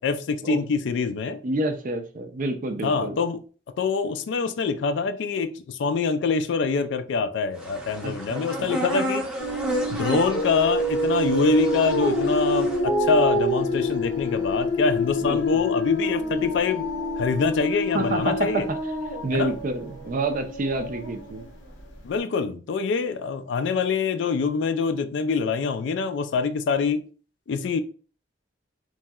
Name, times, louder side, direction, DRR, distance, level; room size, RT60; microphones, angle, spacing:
voice 1, 0.0-1.4 2.8-3.4 3.8-9.2 9.9-16.9 17.2-18.7 19.3-19.5 22.0-27.0 27.5-27.8, left 5 dB, 65° left, 0.3 m, -25 dB
voice 2, 1.4-3.2 8.0-8.7 15.3-15.6 17.9-18.8 19.2-21.4, right 2 dB, 45° right, 0.4 m, -28 dB
sound 1, 7.6-12.8, equal, 5° right, 0.6 m, -32 dB
sound 2, 9.4-21.8, left 1 dB, 80° left, 0.8 m, -27 dB
3.0 x 2.7 x 2.3 m
head